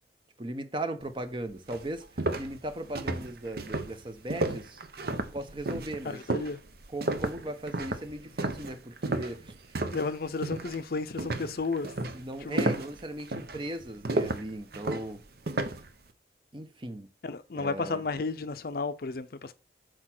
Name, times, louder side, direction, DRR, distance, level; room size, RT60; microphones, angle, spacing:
voice 1, 0.4-2.1 2.4-4.8 5.3-6.2 6.9-9.5 12.1-15.2 16.5-17.1 17.5-18.0, right 1 dB, 30° right, 0.8 m, -37 dB
sound 1, 1.2-1.3 1.7-10.1 10.4-10.8 11.2-15.9, right 2 dB, 55° right, 0.8 m, -32 dB
voice 2, 6.0-6.6 9.9-11.9 12.4-12.7 17.2-19.5, left 4 dB, 55° left, 0.5 m, -33 dB
6.4 x 4.5 x 5.9 m
head